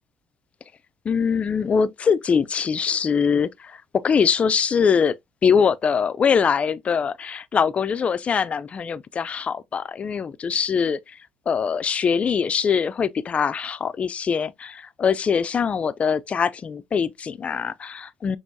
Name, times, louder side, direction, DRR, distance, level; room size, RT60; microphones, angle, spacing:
voice 1, 1.0-5.1 5.4-11.2 11.5-18.4, left 6 dB, 40° left, 0.5 m, -23 dB
6.1 x 3.0 x 2.7 m
supercardioid pair, 80°, 3 cm